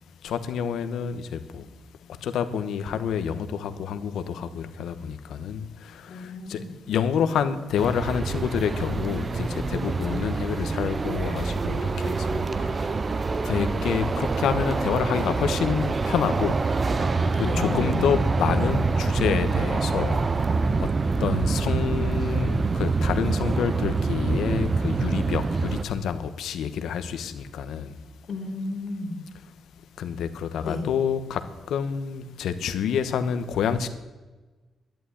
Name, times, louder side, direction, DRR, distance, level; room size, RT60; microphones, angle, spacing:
voice 1, 0.2-1.7 2.1-13.0 13.4-17.1 17.4-20.9 21.2-27.9 30.0-33.9, left 7 dB, 90° left, 1.2 m, -28 dB
voice 2, 6.1-6.7 9.5-9.7 17.0-18.1 18.6-18.7 28.3-29.2 30.7-30.8, left 2 dB, 45° left, 2.8 m, -33 dB
sound 1, 7.8-25.8, right 4 dB, 30° right, 0.6 m, -26 dB
11.5 x 11.0 x 9.6 m
cardioid pair, 130°, 0 cm